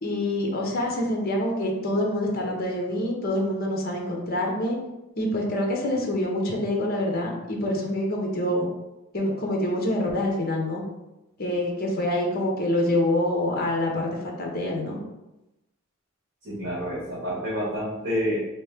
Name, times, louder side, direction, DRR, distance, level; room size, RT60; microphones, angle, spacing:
voice 1, 0.0-4.8 5.2-8.7 9.1-10.8 11.4-15.0, left 1 dB, 45° left, 0 dB, 0.8 m, -26 dB
voice 2, 16.4-18.4, equal, 55° right, -9 dB, 1.2 m, -28 dB
3.1 x 3.1 x 3.5 m, 0.96 s
head